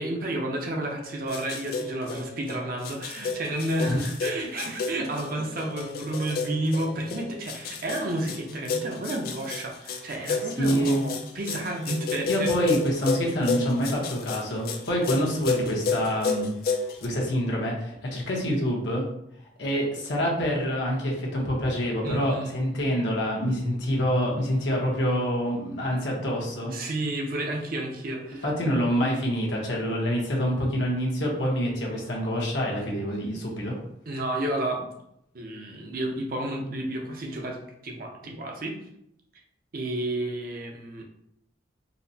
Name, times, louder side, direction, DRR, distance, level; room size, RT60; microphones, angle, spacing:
voice 1, 0.0-12.5 22.0-22.6 26.7-28.4 34.1-34.9 35.3-38.8 39.7-41.0, right 1 dB, 50° right, 1 dB, 0.5 m, -31 dB
sound 1, 1.0-17.1, left 4 dB, 50° left, 0.3 m, -31 dB
voice 2, 10.6-11.1 12.2-16.5 17.0-19.0 19.6-26.7 28.4-33.8, equal, 75° left, -2 dB, 0.9 m, -26 dB
4.0 x 2.1 x 2.6 m, 0.78 s
head